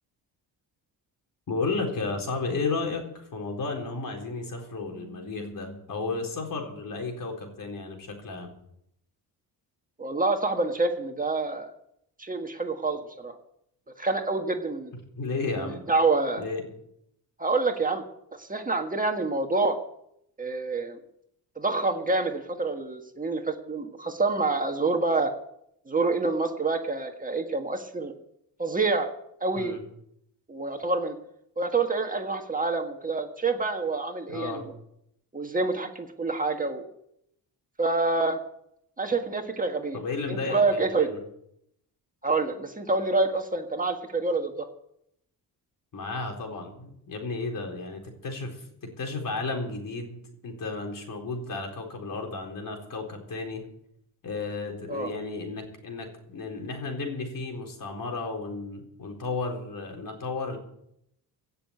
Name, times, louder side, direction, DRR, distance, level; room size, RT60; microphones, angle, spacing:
voice 1, 1.5-8.5 15.2-15.8 16.4-16.7 29.6-29.8 34.3-34.6 39.9-41.2 45.9-53.6 54.2-60.6, left 3 dB, 55° left, 2 dB, 4.2 m, -33 dB
voice 2, 10.0-11.7 12.2-13.3 14.0-14.9 15.6-16.4 17.4-18.0 18.4-19.8 20.4-21.0 21.6-25.3 25.9-28.1 28.6-29.1 29.4-29.7 30.5-31.1 31.6-34.6 35.3-36.9 37.8-38.4 39.0-40.0 40.3-41.1 42.2-44.7 54.9-55.1, right 3 dB, 20° right, 4 dB, 1.6 m, -27 dB
16.5 x 6.8 x 8.8 m, 0.76 s
cardioid pair, 100°, 41 cm